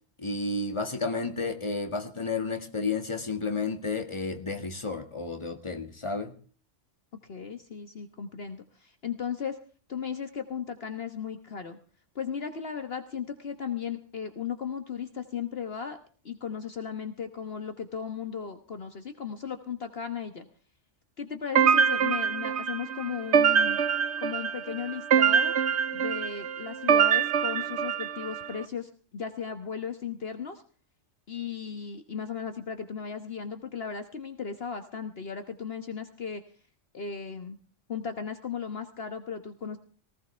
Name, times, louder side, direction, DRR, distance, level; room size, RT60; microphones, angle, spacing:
voice 1, 0.2-6.3, left 3 dB, 25° left, 5 dB, 1.9 m, -31 dB
voice 2, 7.2-9.6 9.9-11.8 12.1-16.0 16.2-20.5 21.2-23.8 24.2-25.5 25.9-30.6 31.3-36.4 36.9-37.6 37.9-39.8, left 7 dB, 55° left, 7 dB, 1.5 m, -36 dB
sound 1, 21.6-28.5, right 7 dB, 65° right, 1.2 m, -24 dB
19.0 x 16.5 x 3.4 m, 0.41 s
omnidirectional pair, 1.3 m